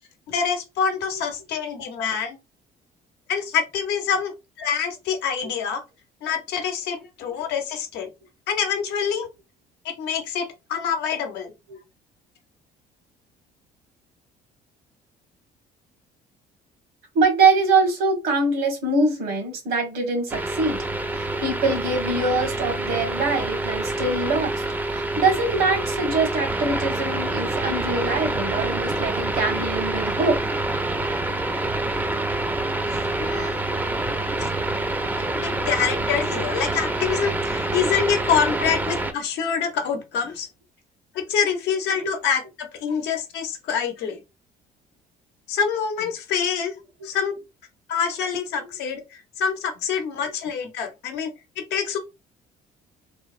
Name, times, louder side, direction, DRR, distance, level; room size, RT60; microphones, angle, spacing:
voice 1, 0.3-2.4 3.3-5.8 6.2-8.1 8.5-9.3 9.8-11.5 33.2-33.6 34.4-34.5 35.2-40.5 41.1-44.2 45.5-47.3 47.9-52.0, left 7 dB, 85° left, 0.8 m, -26 dB
voice 2, 17.1-20.8 21.1-24.6 24.9-30.4 42.0-42.1, right 3 dB, 80° right, 1.3 m, -23 dB
sound 1, 20.3-39.1, right 2 dB, 10° right, 0.4 m, -26 dB
3.2 x 2.0 x 2.4 m
cardioid pair, 110°, 17 cm